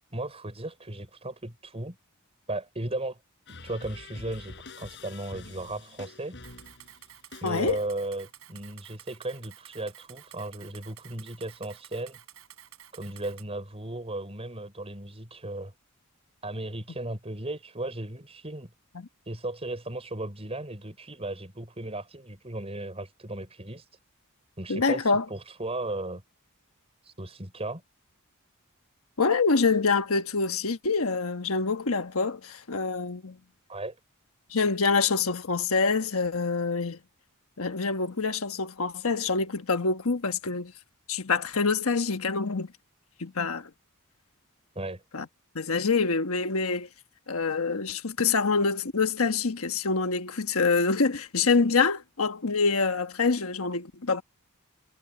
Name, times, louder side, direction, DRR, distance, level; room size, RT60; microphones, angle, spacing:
voice 1, 0.0-2.0 2.5-3.2 3.6-6.4 7.4-12.2 12.9-15.7 16.4-18.7 19.3-23.9 24.6-26.2 27.0-27.8 33.7-34.0 44.8-45.0, right 2 dB, 25° right, 5.5 m, -36 dB
sound 1, 3.5-8.1, left 3 dB, 55° left, 4.5 m, -46 dB
Camera, 6.4-13.4, right 11 dB, 70° right, 7.1 m, -51 dB
voice 2, 7.4-7.8 18.9-19.1 24.7-25.3 29.2-33.4 34.5-37.0 37.6-40.7 41.1-42.7 43.2-43.7 45.1-45.3 45.5-46.9 47.3-54.2, left 4 dB, 70° left, 1.3 m, -26 dB
head